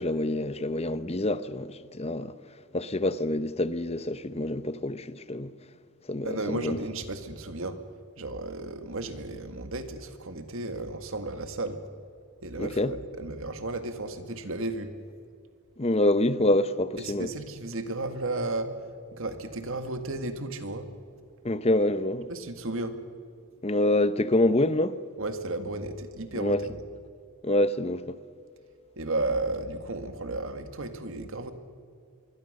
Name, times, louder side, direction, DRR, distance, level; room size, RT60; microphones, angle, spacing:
voice 1, 0.0-2.3 2.7-5.5 6.1-6.8 12.6-12.9 15.8-17.3 21.4-22.3 23.6-25.0 26.3-26.6 27.4-28.2, left 1 dB, 25° left, 0.8 m, -26 dB
voice 2, 6.2-7.8 8.2-11.8 12.4-15.0 17.0-18.7 19.1-20.9 22.3-23.0 25.2-26.8 29.0-31.5, right 2 dB, 60° right, 1.9 m, -33 dB
25.0 x 23.0 x 6.7 m
head